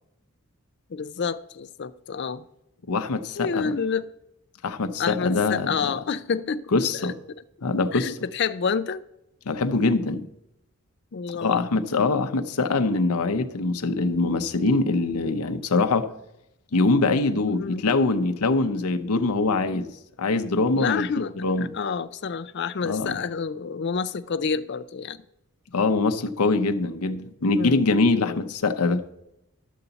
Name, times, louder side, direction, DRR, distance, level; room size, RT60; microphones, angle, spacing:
voice 1, 0.9-2.4 3.4-4.0 5.0-6.6 7.0-7.1 7.9-9.0 11.1-11.7 17.4-17.8 20.7-21.3 21.7-25.2 27.5-27.9 28.2-28.5, left 5 dB, 50° left, 0.4 m, -28 dB
voice 2, 2.9-3.7 4.6-5.9 6.7-7.2 7.6-8.2 9.5-10.3 11.3-16.1 16.7-19.9 20.2-21.1 21.4-21.7 22.8-23.2 25.7-29.0, left 3 dB, 85° left, 0.7 m, -23 dB
12.0 x 7.0 x 4.0 m
head